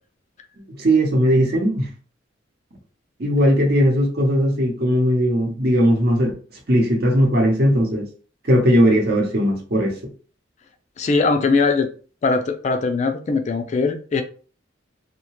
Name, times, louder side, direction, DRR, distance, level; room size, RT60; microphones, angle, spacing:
voice 1, 0.7-1.9 3.2-6.3 6.7-8.1 8.5-9.9, equal, 55° right, 0.8 m, -18 dB
voice 2, 11.0-11.9 12.2-14.2, left 4 dB, 35° left, 0.3 m, -20 dB
2.8 x 2.1 x 2.9 m
head